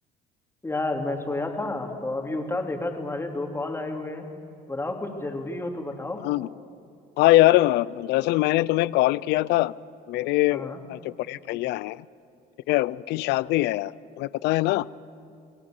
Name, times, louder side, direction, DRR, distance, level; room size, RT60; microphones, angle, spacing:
voice 1, 0.6-4.2 4.7-6.2 10.5-10.8, left 2 dB, 15° left, 3 dB, 3.0 m, -30 dB
voice 2, 7.2-9.7 10.1-12.0 12.7-13.9 14.2-14.9, left 17 dB, 85° left, 20 dB, 0.5 m, -22 dB
28.5 x 19.0 x 7.8 m, 2.5 s
cardioid pair, 110°, 17 cm